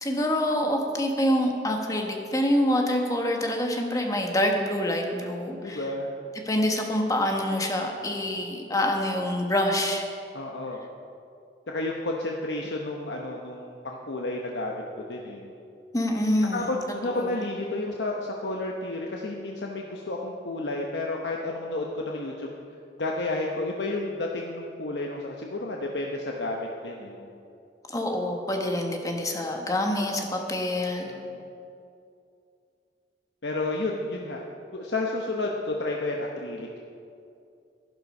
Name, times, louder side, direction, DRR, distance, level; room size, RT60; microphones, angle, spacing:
voice 1, 0.0-5.8 6.5-10.0 15.9-16.7 17.1-17.3 27.9-31.1, left 1 dB, 20° left, 2 dB, 1.2 m, -26 dB
voice 2, 5.6-6.1 10.3-10.9 11.7-15.6 16.5-22.5 23.0-27.3 31.1-31.2 33.4-34.4 34.7-36.8, left 2 dB, 85° left, 0 dB, 0.9 m, -31 dB
12.0 x 11.0 x 5.4 m, 2.5 s
head